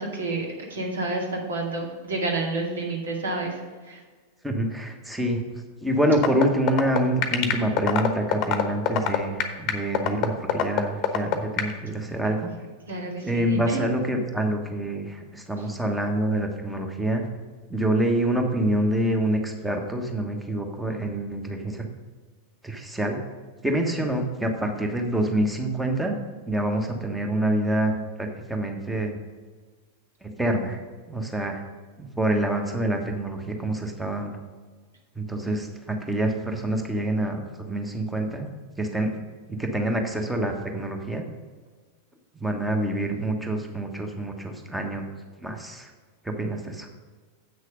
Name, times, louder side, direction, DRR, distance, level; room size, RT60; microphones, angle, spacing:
voice 1, 0.0-3.6 3.8-4.0 12.9-13.8 15.6-15.7, right 2 dB, 65° right, 0 dB, 2.1 m, -29 dB
voice 2, 4.4-5.4 5.8-12.5 13.2-17.3 17.7-21.9 22.6-23.2 23.6-26.2 26.5-29.1 30.2-30.8 31.1-31.6 32.0-34.4 35.1-38.5 38.8-39.1 39.5-41.2 42.4-45.0 45.4-45.9 46.2-46.9, right 1 dB, 5° right, 3 dB, 1.3 m, -26 dB
sound 1, 6.1-11.7, left 10 dB, 40° left, 1.0 m, -22 dB
8.4 x 6.4 x 5.1 m, 1.5 s
figure-of-eight pair, 90°, 0 cm